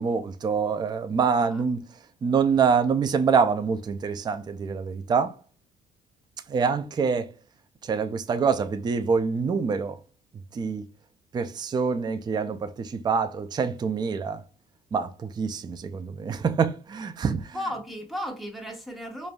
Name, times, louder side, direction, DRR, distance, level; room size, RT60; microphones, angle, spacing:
voice 1, 0.0-1.9 2.2-5.4 6.5-7.3 7.8-10.0 10.5-10.9 11.3-14.4 14.9-17.6, right 5 dB, 25° right, 0.4 m, -25 dB
voice 2, 1.2-1.6 17.5-19.3, equal, ahead, 1.4 m, -35 dB
5.0 x 2.5 x 2.3 m
cardioid pair, 110°, 17 cm